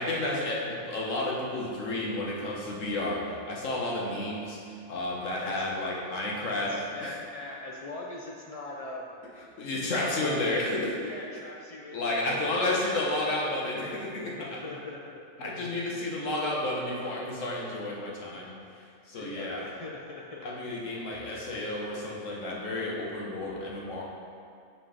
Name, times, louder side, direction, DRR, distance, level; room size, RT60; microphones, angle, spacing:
voice 1, 0.0-6.7 7.0-7.2 9.6-10.9 11.9-14.6 15.4-18.6 19.1-19.6 20.4-24.0, left 2 dB, 85° left, -3 dB, 1.5 m, -31 dB
voice 2, 6.5-9.2 10.0-12.5 12.8-13.7 14.4-15.2 16.0-16.1 17.0-17.1 19.1-20.7 21.2-21.4, left 2 dB, 45° left, -3 dB, 0.5 m, -42 dB
5.8 x 5.2 x 4.9 m, 2.4 s
omnidirectional pair, 1.3 m